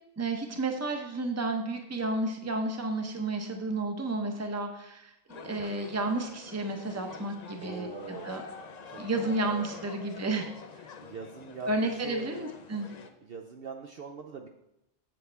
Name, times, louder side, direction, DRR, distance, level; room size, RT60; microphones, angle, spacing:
voice 1, 0.2-5.1 5.4-8.4 9.0-10.5 11.6-12.9, right 2 dB, 15° right, 4 dB, 0.7 m, -32 dB
sound 1, 5.3-13.1, left 5 dB, 45° left, 0.5 m, -46 dB
voice 2, 7.6-8.5 8.9-9.0 9.7-9.8 11.0-12.5 13.2-14.5, right 5 dB, 60° right, 3 dB, 0.7 m, -43 dB
8.0 x 7.7 x 3.4 m, 0.84 s
omnidirectional pair, 1.3 m